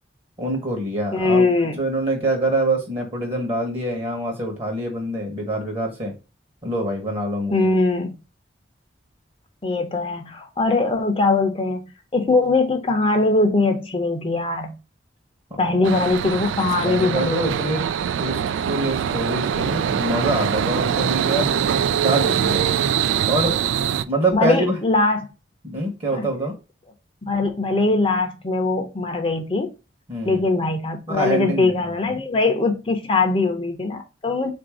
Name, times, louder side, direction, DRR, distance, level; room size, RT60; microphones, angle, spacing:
voice 1, 0.4-6.1 6.6-7.6 15.5-15.9 16.8-17.9 18.2-21.5 22.0-22.7 23.3-23.6 24.1-24.8 25.6-26.5 30.1-30.4 31.1-32.1, right 1 dB, 30° right, 1.0 m, -25 dB
voice 2, 1.1-1.8 7.5-8.2 9.6-14.7 15.6-17.8 24.3-25.3 26.1-26.2 27.2-29.7 30.3-34.5, left 3 dB, 30° left, 0.6 m, -21 dB
sound 1, 15.8-24.0, right 8 dB, 85° right, 0.3 m, -23 dB
3.7 x 2.6 x 4.6 m
head